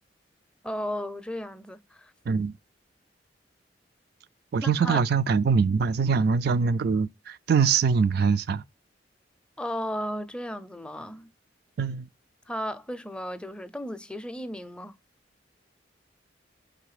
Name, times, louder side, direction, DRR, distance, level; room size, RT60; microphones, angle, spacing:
voice 1, 0.6-2.1 4.6-5.0 9.6-11.3 12.5-15.0, equal, 5° left, 0.5 m, -34 dB
voice 2, 2.3-2.6 4.5-8.6 11.8-12.1, right 5 dB, 60° right, 0.4 m, -23 dB
5.2 x 3.8 x 4.8 m
head